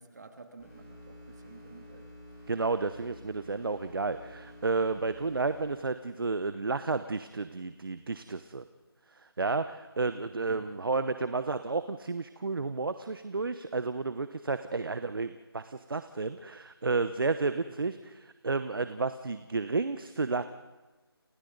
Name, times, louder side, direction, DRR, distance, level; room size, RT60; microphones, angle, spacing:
voice 1, 0.0-2.1 10.5-10.6, right 4 dB, 45° right, 4 dB, 2.6 m, -51 dB
sound 1, 0.6-5.6, left 1 dB, 10° left, 6.5 m, -50 dB
voice 2, 2.5-8.6 9.4-18.1 18.4-20.4, right 3 dB, 60° right, 11 dB, 1.0 m, -31 dB
30.0 x 28.5 x 4.0 m, 1.2 s
figure-of-eight pair, 175°, 13 cm